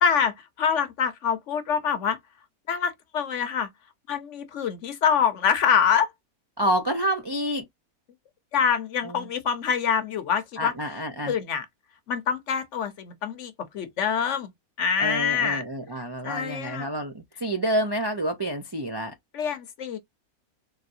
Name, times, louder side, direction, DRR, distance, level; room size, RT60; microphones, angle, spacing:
voice 1, 0.0-2.2 2.7-3.7 4.1-6.1 8.5-10.7 11.3-11.7 12.1-14.5 14.8-15.6 16.2-16.9 19.3-20.0, left 7 dB, 60° left, 1.0 m, -25 dB
voice 2, 6.6-7.6 9.0-9.3 10.6-11.3 15.0-19.1, right 1 dB, 40° right, 0.3 m, -28 dB
4.1 x 3.1 x 2.6 m
omnidirectional pair, 1.5 m